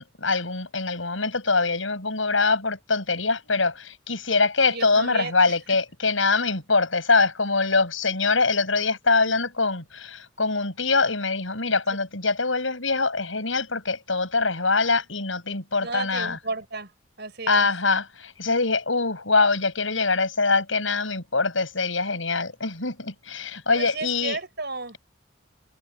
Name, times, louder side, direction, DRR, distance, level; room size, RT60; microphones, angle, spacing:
voice 1, 0.0-16.4 17.5-24.4, left 4 dB, 85° left, 6.5 m, -24 dB
voice 2, 4.7-5.3 5.7-5.8 15.8-16.9 17.2-17.7 23.7-25.0, right 3 dB, 60° right, 7.8 m, -33 dB
head